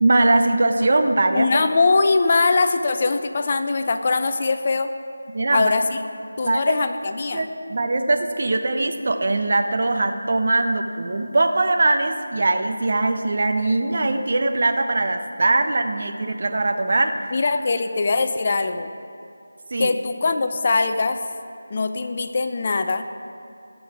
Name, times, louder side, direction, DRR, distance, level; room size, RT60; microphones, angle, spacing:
voice 1, 0.0-1.6 5.3-5.7 6.5-6.8 7.3-17.3 19.7-20.0, right 2 dB, 50° right, 6 dB, 0.8 m, -21 dB
voice 2, 1.3-4.9 5.5-6.0 6.4-7.5 17.3-18.9 19.8-21.2 21.7-23.0, left 3 dB, 35° left, 8 dB, 0.6 m, -21 dB
15.5 x 6.4 x 4.7 m, 2.6 s
figure-of-eight pair, 165°, 0 cm